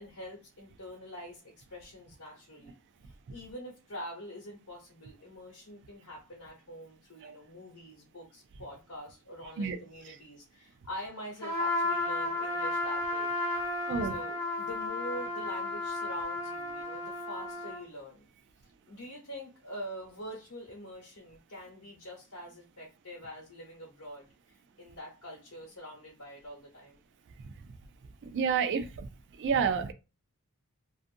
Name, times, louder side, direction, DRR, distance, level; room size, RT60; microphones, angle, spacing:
voice 1, 0.0-2.8 3.0-13.3 14.0-18.2 18.9-27.0, equal, 80° left, 1.1 m, -45 dB
Trumpet, 11.4-17.8, left 2 dB, 10° left, 0.9 m, -33 dB
voice 2, 28.3-29.1 29.4-29.9, right 6 dB, 55° right, 0.4 m, -29 dB
2.5 x 2.4 x 2.5 m
head